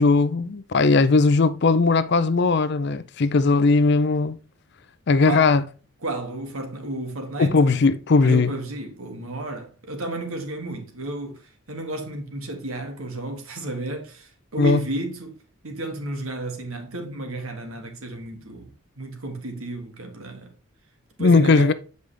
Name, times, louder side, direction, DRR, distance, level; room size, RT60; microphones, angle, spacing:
voice 1, 0.0-4.4 5.1-5.6 7.4-8.5 14.6-14.8 21.2-21.7, left 3 dB, 50° left, 0.5 m, -18 dB
voice 2, 6.0-7.7 8.2-15.3 15.6-20.5 21.2-21.7, right 2 dB, 70° right, 1.8 m, -32 dB
8.1 x 5.2 x 3.4 m
head